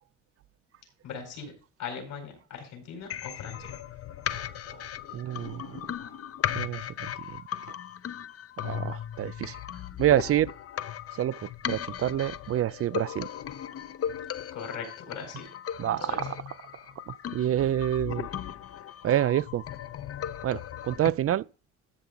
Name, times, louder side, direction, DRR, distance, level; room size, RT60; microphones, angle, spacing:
voice 1, 1.0-1.5 1.8-3.7 14.5-15.5 15.8-16.2, left 6 dB, 80° left, 4.5 m, -40 dB
sound 1, 3.1-21.1, left 10 dB, 50° left, 0.7 m, -37 dB
voice 2, 5.1-5.8 6.5-7.4 8.6-9.6 10.0-10.5 11.2-13.3 15.8-16.4 17.1-18.3 19.0-19.6 20.4-21.4, right 12 dB, 50° right, 0.4 m, -27 dB
13.0 x 7.1 x 3.9 m
cardioid pair, 90°, 30 cm